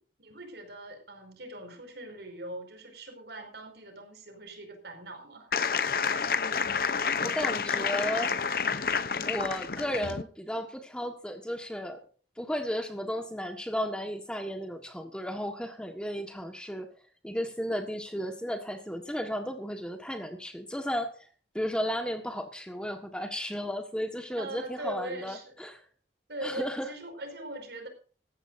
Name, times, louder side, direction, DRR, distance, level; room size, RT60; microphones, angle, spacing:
voice 1, 0.2-5.5 24.4-25.5 26.3-27.9, right 1 dB, 70° right, 5 dB, 5.3 m, -41 dB
sound 1, 5.5-10.2, left 6 dB, 55° left, 0.7 m, -29 dB
voice 2, 7.2-8.3 9.2-12.0 12.4-16.9 17.2-21.3 21.5-25.8 26.4-26.9, equal, 5° left, 5 dB, 1.5 m, -34 dB
18.0 x 15.0 x 2.7 m, 0.39 s
head